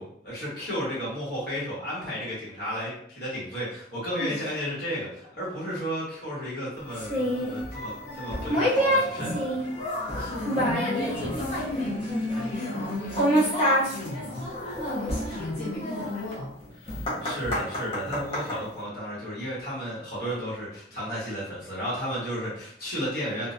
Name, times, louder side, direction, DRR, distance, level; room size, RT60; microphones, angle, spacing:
voice 1, 0.0-9.5 16.9-23.5, equal, 55° left, -8 dB, 1.3 m, -33 dB
voice 2, 4.2-4.5 10.2-16.5, left 2 dB, 70° left, -8 dB, 0.6 m, -35 dB
sound 1, 6.9-18.6, equal, 30° left, 0.7 m, -28 dB
2.4 x 2.1 x 2.5 m, 0.68 s
head